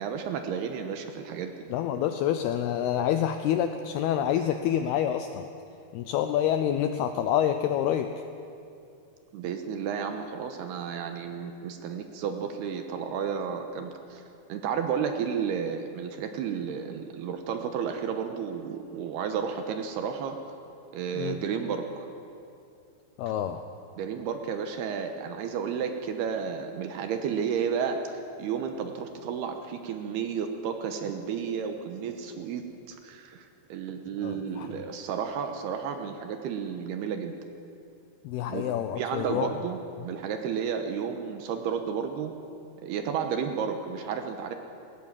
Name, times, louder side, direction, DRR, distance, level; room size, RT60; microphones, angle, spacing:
voice 1, 0.0-1.5 9.3-14.2 14.5-20.4 20.9-22.1 24.0-37.4 38.5-38.7 39.0-42.3 42.8-44.6, right 7 dB, 75° right, 6 dB, 2.7 m, -32 dB
voice 2, 1.7-5.4 5.9-8.1 21.1-21.4 23.2-23.6 34.2-34.7 38.2-39.5, left 10 dB, 85° left, 8 dB, 2.3 m, -27 dB
20.0 x 18.5 x 7.5 m, 2.6 s
omnidirectional pair, 5.3 m